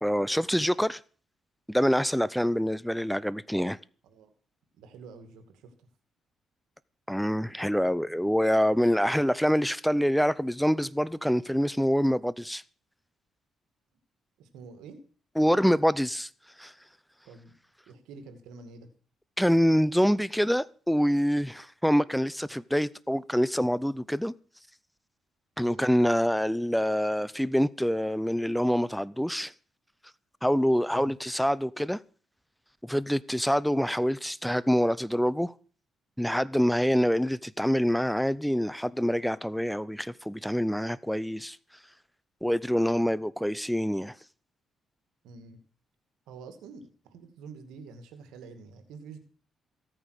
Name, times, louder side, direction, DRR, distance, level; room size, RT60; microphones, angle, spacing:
voice 1, 0.0-1.0 1.7-3.8 7.1-12.6 15.4-16.3 16.6-16.7 19.4-24.3 25.6-29.5 30.4-32.0 32.8-35.5 36.2-41.6 42.4-44.1, equal, ahead, 0.6 m, -26 dB
voice 2, 4.8-5.9 8.6-8.7 9.0-9.3 14.4-15.0 17.3-17.5 17.9-18.9 25.6-25.9 30.9-31.1 45.2-45.6 46.3-49.2, right 4 dB, 90° right, 2.3 m, -47 dB
16.0 x 9.0 x 6.6 m
cardioid pair, 90°, 0 cm